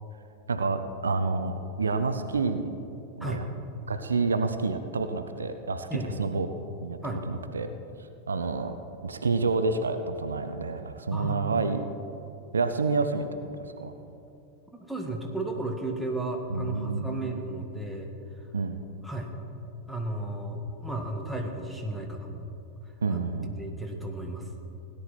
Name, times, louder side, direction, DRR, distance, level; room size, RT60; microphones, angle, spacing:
voice 1, 0.5-2.8 3.2-3.4 3.9-5.9 6.2-6.5 6.8-7.7 8.3-8.7 9.0-11.9 12.5-13.3 13.8-14.0 16.5-17.4 18.5-18.8 23.0-23.5, right 4 dB, 70° right, 9 dB, 0.6 m, -28 dB
voice 2, 5.9-6.2 7.0-7.3 11.1-11.7 14.7-18.1 19.0-19.3 19.9-22.4 23.1-24.5, right 1 dB, ahead, 0 dB, 1.7 m, -34 dB
17.0 x 10.5 x 4.3 m, 2.7 s
figure-of-eight pair, 90°, 0 cm